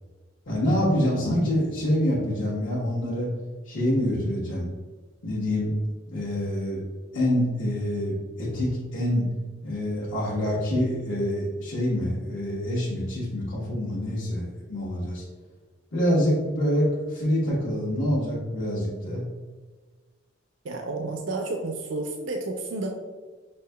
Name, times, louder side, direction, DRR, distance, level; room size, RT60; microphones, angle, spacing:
voice 1, 0.5-3.3 3.6-4.7 5.2-5.8 6.1-6.8 7.1-9.3 9.6-15.2 15.9-19.2, equal, 75° left, -10 dB, 1.1 m, -26 dB
voice 2, 20.6-22.9, right 2 dB, 70° right, 3 dB, 0.4 m, -31 dB
5.6 x 2.7 x 2.2 m, 1.4 s
head